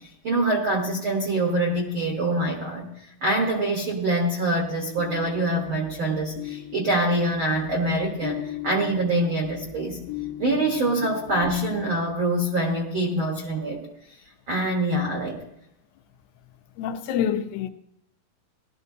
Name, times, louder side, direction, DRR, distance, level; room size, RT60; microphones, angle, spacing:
voice 1, 0.2-2.9 3.2-10.0 10.4-13.8 14.5-15.4, right 1 dB, 75° right, 1.1 m, -25 dB
sound 1, 4.9-12.6, left 14 dB, 70° left, 2.3 m, -39 dB
voice 2, 16.8-17.7, left 9 dB, 90° left, 2.7 m, -26 dB
17.5 x 12.5 x 2.7 m
omnidirectional pair, 4.5 m